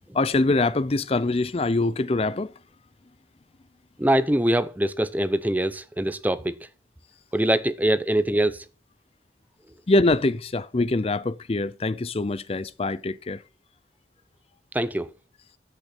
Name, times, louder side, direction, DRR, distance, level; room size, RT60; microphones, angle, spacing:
voice 1, 0.1-2.5 9.9-13.4, left 2 dB, 35° left, 0.5 m, -24 dB
voice 2, 4.0-6.5 7.3-8.6 14.7-15.1, right 1 dB, 10° right, 0.6 m, -23 dB
10.5 x 8.1 x 5.9 m
head